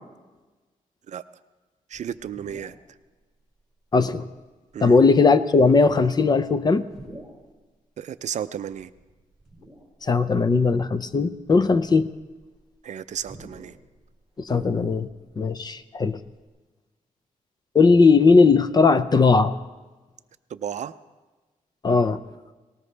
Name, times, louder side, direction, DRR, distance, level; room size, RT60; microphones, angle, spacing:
sound 1, 1.9-2.9 3.5-3.6 4.7-5.0 5.7-7.5 8.6-10.2 10.7-10.8 11.4-15.4 15.7-15.8 16.0-16.5, right 1 dB, ahead, 4.0 m, -48 dB
voice 1, 1.9-2.8 4.7-5.0 8.0-8.9 12.8-13.8 20.5-20.9, right 9 dB, 55° right, 13 dB, 0.5 m, -33 dB
voice 2, 3.9-4.3 4.8-6.8 10.0-12.1 14.4-15.1 15.4-16.2 17.7-19.5 21.8-22.2, left 4 dB, 30° left, 12 dB, 0.5 m, -18 dB
19.0 x 18.5 x 3.3 m, 1.2 s
wide cardioid pair, 165°, 14 cm